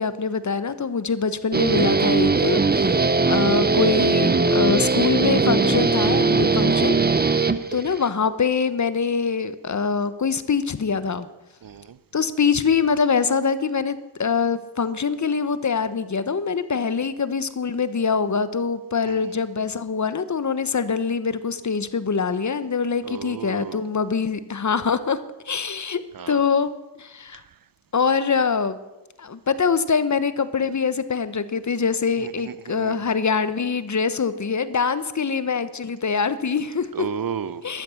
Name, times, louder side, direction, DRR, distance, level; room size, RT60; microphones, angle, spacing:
voice 1, 0.0-2.8 3.3-7.0 7.2-11.3 12.1-25.2 25.5-26.7 27.0-27.4 27.9-28.8 29.2-36.9 37.6-37.8, left 5 dB, 40° left, 14 dB, 1.1 m, -24 dB
Guitar, 1.5-8.1, right 3 dB, 20° right, 0.8 m, -20 dB
voice 2, 3.1-3.5 7.4-7.6 11.6-12.0 19.0-19.4 23.0-23.8 26.1-26.4 27.3-27.4 32.2-33.0 36.9-37.7, right 7 dB, 55° right, 17 dB, 0.8 m, -34 dB
13.0 x 13.0 x 7.1 m, 1.1 s
cardioid pair, 75°, 42 cm